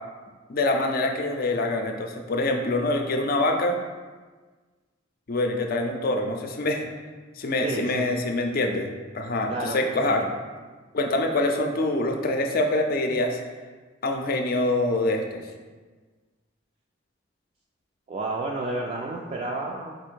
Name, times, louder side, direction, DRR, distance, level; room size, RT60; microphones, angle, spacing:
voice 1, 0.5-3.8 5.3-6.9 7.4-8.9 9.1-10.2 10.9-13.4 14.0-15.4, left 2 dB, 50° left, 3 dB, 0.5 m, -25 dB
voice 2, 7.6-8.0 9.5-10.3 18.1-20.0, right 2 dB, 35° right, -2 dB, 0.3 m, -31 dB
4.2 x 2.5 x 4.5 m, 1.4 s
head